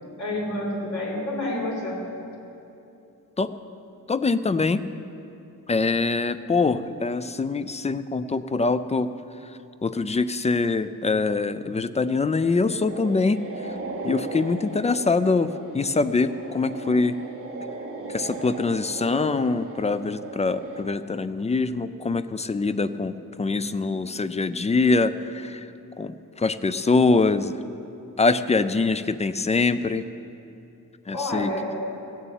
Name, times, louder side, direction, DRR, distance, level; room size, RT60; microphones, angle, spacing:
voice 1, 0.2-2.0 31.1-31.7, left 1 dB, 60° left, -3 dB, 4.0 m, -28 dB
voice 2, 4.1-4.8 5.7-9.1 9.4-9.5 9.8-13.4 14.0-17.1 18.1-25.7 26.0-27.6 28.2-30.0 31.1-31.5, left 3 dB, 20° left, 12 dB, 0.3 m, -24 dB
sound 1, 12.8-20.8, right 2 dB, 40° right, 1.7 m, -37 dB
16.0 x 6.9 x 8.9 m, 2.8 s
wide cardioid pair, 165°, 34 cm